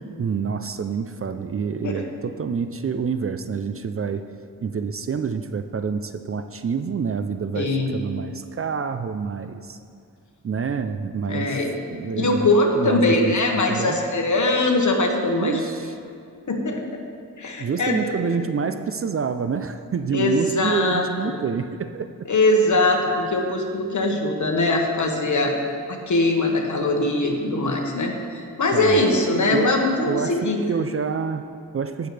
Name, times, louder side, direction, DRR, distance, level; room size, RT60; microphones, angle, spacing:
voice 1, 0.2-4.2 4.6-9.8 10.4-11.6 11.9-12.5 12.8-14.0 15.4-15.9 17.6-22.1 28.7-29.0 29.5-29.8 30.1-32.1, right 6 dB, 40° right, 10 dB, 0.4 m, -27 dB
voice 2, 7.5-7.9 11.3-11.7 12.1-15.6 16.5-16.8 17.4-18.3 20.1-21.3 22.3-25.5 25.9-30.7, left 2 dB, 55° left, 2 dB, 1.5 m, -21 dB
16.5 x 6.8 x 3.3 m, 2.3 s
cardioid pair, 75°, 35 cm